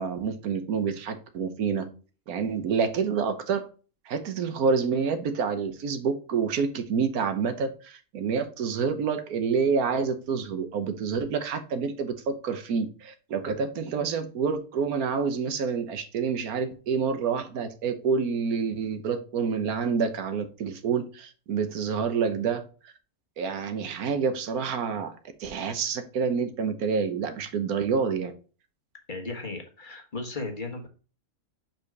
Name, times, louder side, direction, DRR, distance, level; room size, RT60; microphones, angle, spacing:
voice 1, 0.0-1.9 2.3-3.7 4.1-22.6 23.4-28.3, right 5 dB, 90° right, 9 dB, 1.4 m, -28 dB
voice 2, 29.1-30.9, left 3 dB, 35° left, 3 dB, 1.4 m, -35 dB
5.3 x 4.4 x 4.7 m, 0.35 s
omnidirectional pair, 1.5 m